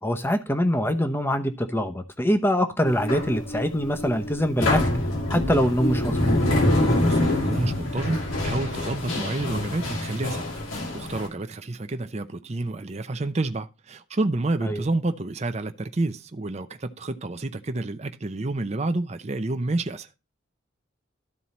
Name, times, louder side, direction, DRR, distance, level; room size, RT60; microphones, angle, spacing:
voice 1, 0.0-4.8 5.3-6.4 14.6-14.8, equal, 10° left, 0.8 m, -24 dB
sound 1, 2.8-11.3, left 1 dB, 85° left, 2.7 m, -25 dB
voice 2, 7.0-10.4 10.7-20.1, right 2 dB, 35° right, 0.6 m, -29 dB
12.5 x 4.5 x 4.1 m
head